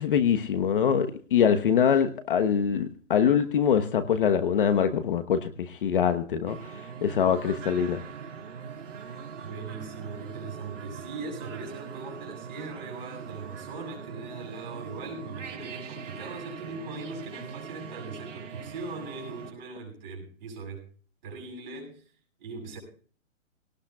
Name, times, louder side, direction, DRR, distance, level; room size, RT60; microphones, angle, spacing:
voice 1, 0.0-6.6 7.0-8.0, left 8 dB, 40° left, 9 dB, 1.1 m, -24 dB
sound 1, 6.5-19.5, right 6 dB, 65° right, 3.1 m, -41 dB
voice 2, 9.4-20.9 21.2-22.0 22.4-22.8, right 3 dB, 35° right, 1 dB, 7.2 m, -40 dB
22.0 x 18.5 x 2.4 m, 0.43 s
hypercardioid pair, 165°, 39 cm